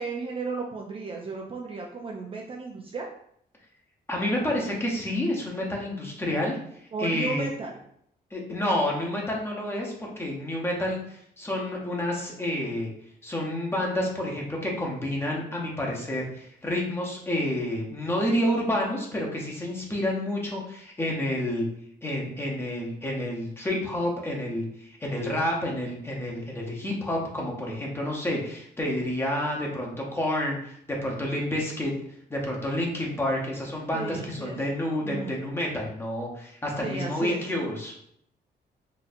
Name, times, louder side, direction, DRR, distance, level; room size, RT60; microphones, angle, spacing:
voice 1, 0.0-3.1 6.9-7.8 33.9-34.6 35.0-35.3 36.8-37.4, right 4 dB, 30° right, 0 dB, 0.4 m, -34 dB
voice 2, 4.1-7.4 8.3-12.9 13.2-21.7 22.0-31.9 32.3-37.9, left 1 dB, 15° left, -2 dB, 0.8 m, -29 dB
4.1 x 2.6 x 2.6 m, 0.68 s
cardioid pair, 145°, 17 cm